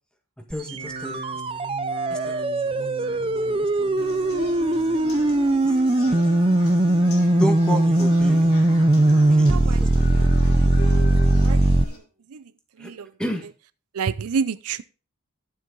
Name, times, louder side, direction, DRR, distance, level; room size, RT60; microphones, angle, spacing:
voice 1, 0.5-1.7 2.1-4.0 4.7-5.0 5.3-6.2 7.4-8.6 9.3-10.8 12.8-12.9 13.2-13.4, equal, 5° left, 1.6 m, -33 dB
sound 1, 0.5-11.8, right 1 dB, 25° right, 0.5 m, -20 dB
sound 2, 0.6-5.9 6.2-6.8 7.3-8.0 8.4-9.1 9.5-10.2 10.6-11.2 11.7-11.8, right 2 dB, 45° right, 1.1 m, -43 dB
sound 3, 4.0-12.0, left 2 dB, 70° left, 3.3 m, -38 dB
voice 2, 9.2-9.8 10.1-11.0 11.4-12.0 12.3-12.5 12.8-13.1 13.9-14.8, right 6 dB, 80° right, 0.5 m, -30 dB
12.5 x 7.5 x 3.9 m
head